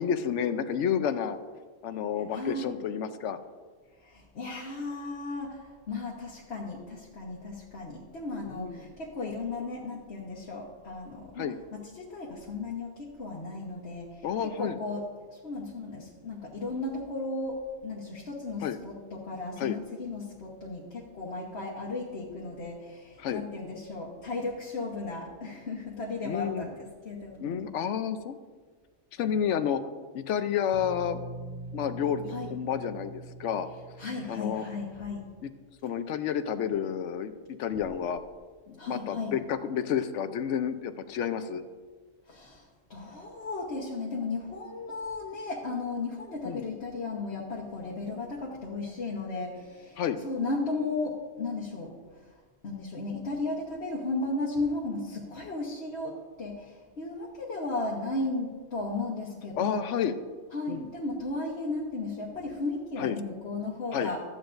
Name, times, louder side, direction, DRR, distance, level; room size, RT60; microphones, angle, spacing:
voice 1, 0.0-1.4 1.8-3.4 8.5-8.8 11.4-11.5 14.2-14.8 18.6-18.8 19.6-19.8 23.2-23.4 26.2-26.7 27.4-28.4 29.2-29.8 30.1-31.2 31.7-33.7 34.3-34.6 35.4-35.5 35.8-38.2 38.7-41.6 46.4-46.7 50.0-50.2 59.6-60.2 60.7-60.9 63.0-63.2 63.9-64.1, left 8 dB, 85° left, 11 dB, 1.0 m, -30 dB
voice 2, 2.3-2.7 4.0-15.0 15.3-27.7 32.3-32.5 34.0-35.3 38.8-39.4 42.3-59.8 60.5-64.2, left 3 dB, 65° left, -3 dB, 1.4 m, -35 dB
sound 1, 30.7-35.6, right 1 dB, 50° right, 2.3 m, -43 dB
14.0 x 9.0 x 2.6 m, 1.5 s
omnidirectional pair, 1.2 m